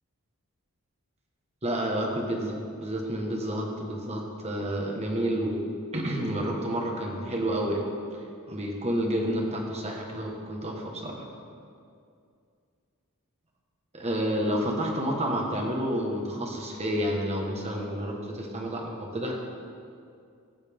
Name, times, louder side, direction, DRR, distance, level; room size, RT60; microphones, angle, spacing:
voice 1, 1.6-7.9 8.5-11.3 13.9-19.3, equal, 30° right, 0 dB, 1.3 m, -30 dB
15.5 x 6.7 x 3.6 m, 2.3 s
head